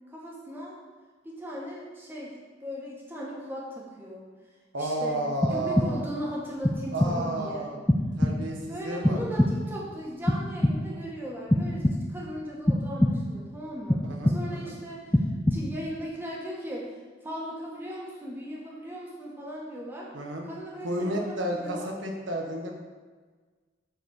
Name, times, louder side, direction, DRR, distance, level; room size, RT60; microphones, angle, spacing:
voice 1, 0.1-0.8 1.2-2.3 2.6-4.2 4.8-7.7 8.7-15.2 15.5-20.1 20.4-21.9, equal, 10° right, -5 dB, 1.8 m, -38 dB
voice 2, 4.7-6.0 6.9-7.8 8.2-9.2 14.0-14.8 20.1-20.4 20.8-22.8, right 1 dB, 85° right, 1 dB, 1.5 m, -32 dB
sound 1, 5.4-6.2 6.6-7.4 7.9-8.7 9.0-9.8 10.3-11.1 11.5-12.3 12.7-13.5 13.9-14.7 15.1-15.9, left 1 dB, 10° left, 0.4 m, -26 dB
7.7 x 4.7 x 6.6 m, 1.4 s
head